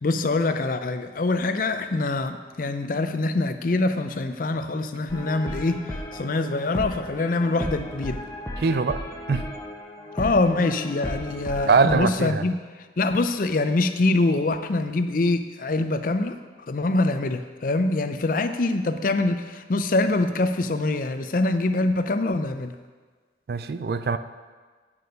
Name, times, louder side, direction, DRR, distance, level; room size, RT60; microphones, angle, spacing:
voice 1, 0.0-8.2 10.1-12.7 13.0-16.4 16.7-22.7, left 2 dB, 45° left, 9 dB, 0.5 m, -24 dB
sound 1, 5.1-12.0, left 1 dB, 15° left, 0.9 m, -35 dB
voice 2, 8.6-9.0 9.3-9.5 11.7-12.4 23.5-24.2, right 4 dB, 55° right, 12 dB, 0.4 m, -22 dB
8.5 x 6.8 x 5.2 m, 1.4 s
head